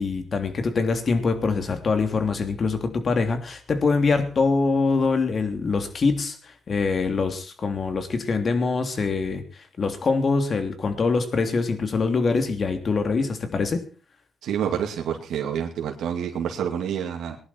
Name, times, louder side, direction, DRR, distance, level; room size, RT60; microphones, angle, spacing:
voice 1, 0.0-13.8, left 4 dB, 50° left, 7 dB, 3.0 m, -24 dB
voice 2, 14.4-17.4, right 8 dB, 85° right, 1 dB, 2.3 m, -28 dB
20.0 x 11.0 x 4.5 m, 0.37 s
cardioid pair, 85°, 0 cm